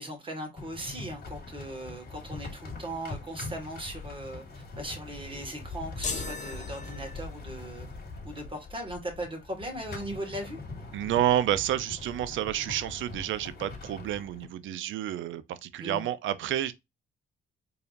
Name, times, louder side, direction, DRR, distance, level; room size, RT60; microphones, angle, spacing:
voice 1, 0.0-7.9 8.2-10.6 15.8-16.0, right 1 dB, 25° right, 1.8 m, -38 dB
sound 1, 0.6-14.5, left 3 dB, 55° left, 1.8 m, -42 dB
sound 2, 6.0-7.6, left 4 dB, 40° left, 1.1 m, -37 dB
voice 2, 10.9-16.7, right 12 dB, 75° right, 0.6 m, -29 dB
4.6 x 3.3 x 2.5 m
cardioid pair, 90°, 20 cm